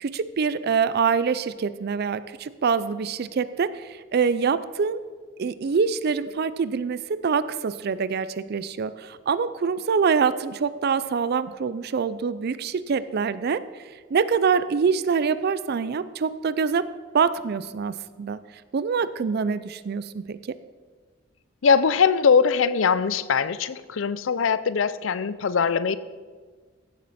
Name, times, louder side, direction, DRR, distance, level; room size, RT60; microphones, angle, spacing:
voice 1, 0.0-5.0 5.4-13.6 14.1-18.4 18.7-20.6, right 5 dB, 55° right, 15 dB, 0.4 m, -25 dB
voice 2, 21.6-26.0, left 6 dB, 85° left, 16 dB, 0.5 m, -21 dB
15.5 x 7.4 x 4.2 m, 1.5 s
head